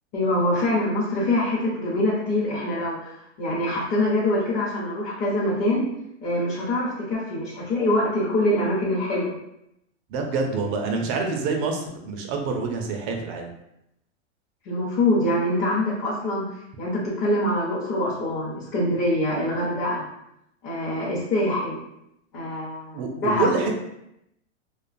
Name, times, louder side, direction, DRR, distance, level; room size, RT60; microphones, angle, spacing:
voice 1, 0.1-5.9 6.2-9.3 14.6-16.4 16.8-20.0 20.6-21.8 22.3-23.5, left 1 dB, 35° left, -7 dB, 0.8 m, -24 dB
voice 2, 10.1-13.5 22.9-23.8, right 4 dB, 35° right, 2 dB, 0.4 m, -26 dB
2.4 x 2.2 x 2.5 m, 0.81 s
hypercardioid pair, 125°, 37 cm